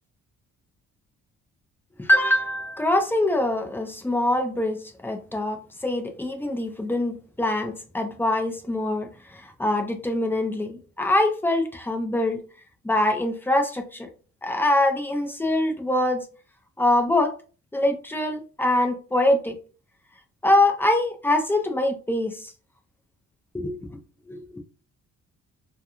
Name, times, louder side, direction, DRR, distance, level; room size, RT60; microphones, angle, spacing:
voice 1, 2.0-5.6 5.8-9.1 9.6-12.4 12.8-14.1 14.4-16.2 16.8-17.3 17.7-19.6 20.4-22.5 23.5-23.8 24.3-24.4, left 1 dB, 5° left, 0.5 m, -23 dB
2.4 x 2.2 x 2.9 m
cardioid pair, 90°, 30 cm